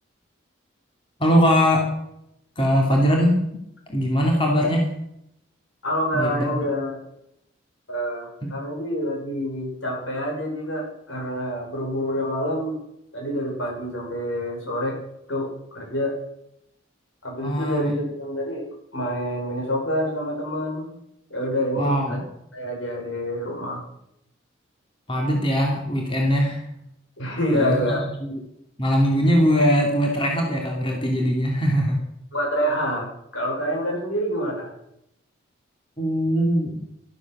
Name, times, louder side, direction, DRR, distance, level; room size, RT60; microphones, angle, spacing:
voice 1, 1.2-1.9 2.6-3.3 3.9-4.8 6.1-6.5 8.4-8.5 17.4-17.9 21.8-22.2 25.1-26.6 27.5-27.9 28.2-28.4 28.8-32.0 36.0-36.8, equal, 25° left, 0 dB, 2.9 m, -21 dB
voice 2, 5.8-7.0 7.9-12.8 13.1-15.0 15.3-16.1 17.2-20.9 21.3-22.2 22.5-23.8 27.2-28.0 32.3-33.1 33.3-34.7, equal, 75° left, 0 dB, 6.5 m, -27 dB
13.5 x 13.0 x 6.3 m, 0.79 s
head